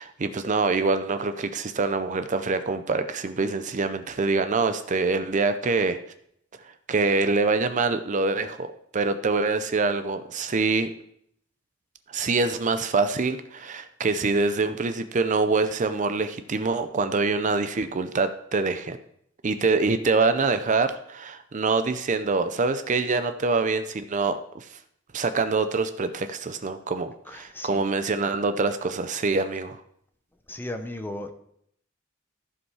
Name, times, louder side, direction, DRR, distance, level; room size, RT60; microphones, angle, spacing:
voice 1, 0.0-6.0 6.9-10.9 12.1-19.0 19.4-24.7 25.1-29.8, right 3 dB, 40° right, 10 dB, 0.5 m, -25 dB
voice 2, 27.3-27.8 30.5-31.3, left 1 dB, 10° left, 7 dB, 0.8 m, -35 dB
14.5 x 5.3 x 4.8 m, 0.71 s
head